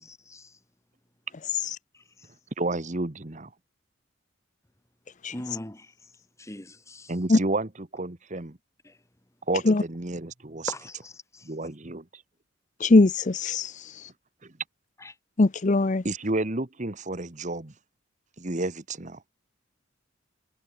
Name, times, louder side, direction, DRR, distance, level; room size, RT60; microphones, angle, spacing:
voice 1, 0.0-0.5 5.3-5.9 6.4-7.1 10.7-11.5 15.0-15.1, left 1 dB, 15° left, 1.4 m, -40 dB
voice 2, 2.6-3.5 7.1-8.5 9.5-10.7 11.4-12.2 14.4-14.5 16.0-17.7 18.4-19.2, right 2 dB, 35° right, 1.4 m, -31 dB
voice 3, 12.8-14.0 15.4-16.0, left 2 dB, 35° left, 0.6 m, -21 dB
head